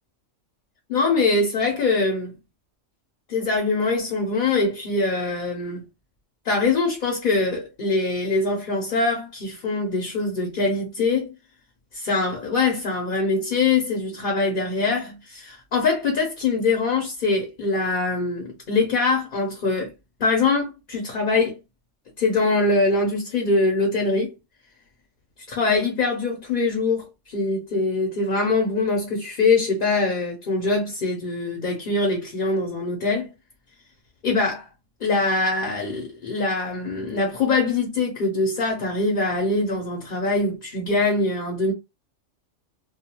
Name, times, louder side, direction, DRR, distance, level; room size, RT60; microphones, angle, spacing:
voice 1, 0.9-2.4 3.3-5.8 6.4-11.3 11.9-19.9 20.2-21.5 22.2-24.3 25.5-33.3 34.2-34.7 35.0-41.7, left 3 dB, 50° left, 0.7 m, -23 dB
2.3 x 2.3 x 2.8 m
omnidirectional pair, 1.3 m